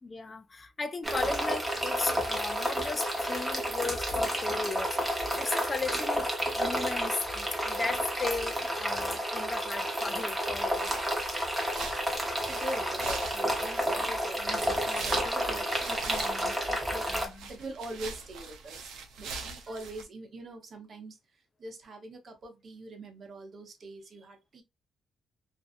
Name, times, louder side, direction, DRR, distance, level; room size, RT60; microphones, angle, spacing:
voice 1, 0.0-11.0 16.9-17.5, left 4 dB, 30° left, 0.3 m, -36 dB
sound 1, 1.0-17.3, equal, 10° right, 0.8 m, -31 dB
sound 2, 10.7-20.0, right 4 dB, 85° right, 0.5 m, -43 dB
voice 2, 12.0-16.9 17.5-24.6, right 2 dB, 50° right, 0.9 m, -43 dB
2.6 x 2.4 x 2.4 m
cardioid pair, 90°, 0 cm